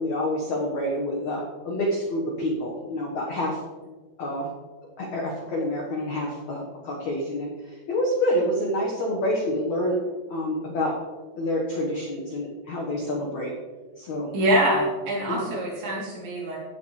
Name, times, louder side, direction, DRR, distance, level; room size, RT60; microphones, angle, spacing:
voice 1, 0.0-3.6 4.2-4.5 5.0-7.5 7.9-10.0 10.3-10.9 11.3-13.5 14.0-14.3 15.3-15.5, left 1 dB, 85° left, -2 dB, 1.6 m, -27 dB
voice 2, 14.3-16.6, right 1 dB, 65° right, -5 dB, 5.4 m, -24 dB
17.0 x 8.8 x 3.3 m, 1.4 s
omnidirectional pair, 5.7 m